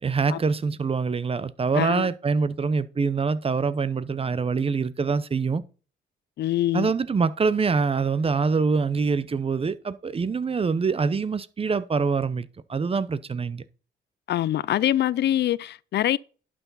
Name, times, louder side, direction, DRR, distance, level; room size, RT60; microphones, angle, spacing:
voice 1, 0.0-5.6 6.7-13.6, right 5 dB, 30° right, 0.7 m, -25 dB
voice 2, 1.7-2.1 6.4-6.9 14.3-16.2, left 12 dB, 60° left, 0.4 m, -24 dB
11.0 x 6.0 x 4.1 m
cardioid pair, 90°, 20 cm